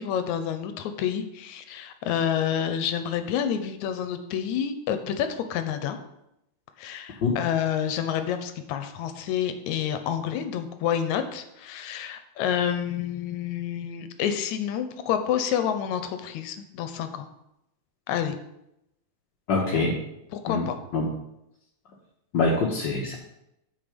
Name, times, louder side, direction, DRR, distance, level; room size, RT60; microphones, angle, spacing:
voice 1, 0.0-6.0 6.8-17.3 18.1-18.4 20.3-20.8, left 9 dB, 80° left, 9 dB, 2.1 m, -28 dB
voice 2, 19.5-19.9 20.5-20.7 20.9-21.1 22.3-23.2, left 3 dB, 55° left, -3 dB, 1.3 m, -24 dB
9.0 x 6.5 x 5.1 m, 0.83 s
omnidirectional pair, 3.4 m